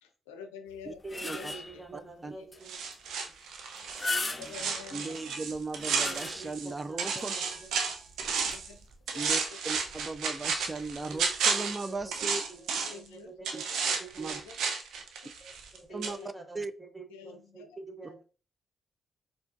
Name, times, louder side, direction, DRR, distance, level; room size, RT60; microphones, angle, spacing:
voice 1, 0.0-1.5 4.3-5.3 8.3-8.8 9.1-9.5 12.8-13.3 13.8-13.9 14.4-14.6 15.9-16.3 17.1-17.7, left 6 dB, 90° left, 0.5 m, -47 dB
sound 1, 0.7-1.9 2.5-2.6 2.9-3.0 3.8-4.8 5.5-6.7 7.2-7.3 8.4-8.5, left 2 dB, 25° left, 0.7 m, -37 dB
voice 2, 1.0-2.8 3.2-3.4 6.0-7.8 11.1-14.4 14.9-15.0 15.4-18.2, right 4 dB, 15° right, 0.9 m, -48 dB
sound 2, 2.7-6.7 7.0-8.7 9.1-13.1 13.4-15.8 16.0-16.1, right 5 dB, 75° right, 0.6 m, -32 dB
voice 3, 4.9-7.3 9.1-12.4 13.5-13.6 14.2-14.4 15.9-16.2 16.5-16.7, right 3 dB, 30° right, 0.4 m, -37 dB
4.3 x 2.7 x 2.5 m
hypercardioid pair, 45°, 0 cm